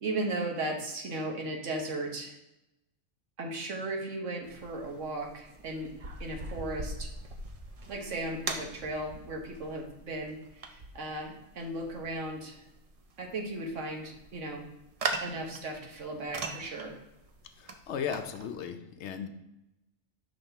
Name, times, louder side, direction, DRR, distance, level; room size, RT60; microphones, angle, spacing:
voice 1, 0.0-2.4 3.4-5.9 6.2-7.1 7.9-12.6 13.2-14.7 15.2-17.0, right 2 dB, 80° right, 2 dB, 1.4 m, -36 dB
sound 1, 4.4-18.5, right 3 dB, 45° right, 0.5 m, -41 dB
voice 2, 17.5-19.3, left 7 dB, 70° left, 8 dB, 0.8 m, -36 dB
5.6 x 3.4 x 5.6 m, 0.90 s
omnidirectional pair, 1.3 m